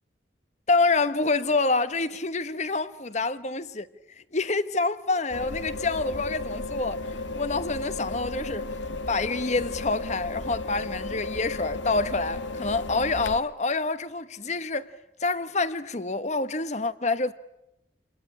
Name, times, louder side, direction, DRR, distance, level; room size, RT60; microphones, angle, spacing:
voice 1, 0.7-8.7 9.1-14.9 15.2-17.3, left 3 dB, 40° left, 1.1 m, -27 dB
sound 1, 5.3-13.4, left 2 dB, 90° left, 1.6 m, -34 dB
28.0 x 21.0 x 9.9 m
head